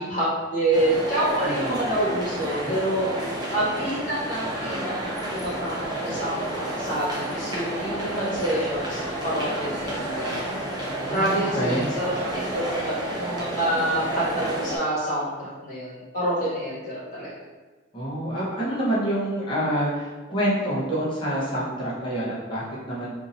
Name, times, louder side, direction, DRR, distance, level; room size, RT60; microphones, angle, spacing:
voice 1, 0.0-3.1 3.5-10.4 11.1-17.3, right 1 dB, 40° left, -8 dB, 1.3 m, -27 dB
sound 1, 0.7-14.8, right 1 dB, 20° right, 0.6 m, -30 dB
voice 2, 1.4-1.8 2.6-2.7 11.0-11.9 17.9-23.1, right 1 dB, 25° left, -8 dB, 1.0 m, -27 dB
2.7 x 2.7 x 4.0 m, 1.3 s
head